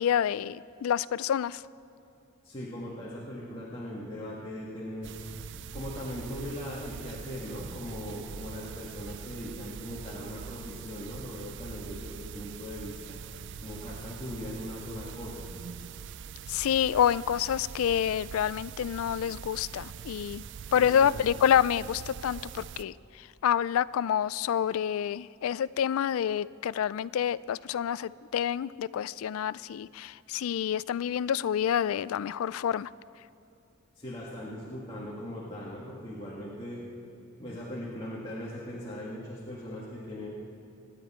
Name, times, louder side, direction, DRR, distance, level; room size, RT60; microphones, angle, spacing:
voice 1, 0.0-1.6 16.5-20.4 20.7-22.9 23.4-32.9, left 9 dB, 85° left, 19 dB, 0.3 m, -28 dB
voice 2, 2.4-5.1 5.7-13.2 13.6-15.5 20.8-21.1 21.4-21.5 34.0-36.8 37.4-40.3, left 1 dB, 25° left, -7 dB, 1.9 m, -39 dB
sound 1, 5.0-22.8, right 7 dB, 60° right, 0.4 m, -43 dB
26.5 x 9.9 x 4.4 m, 2.8 s
head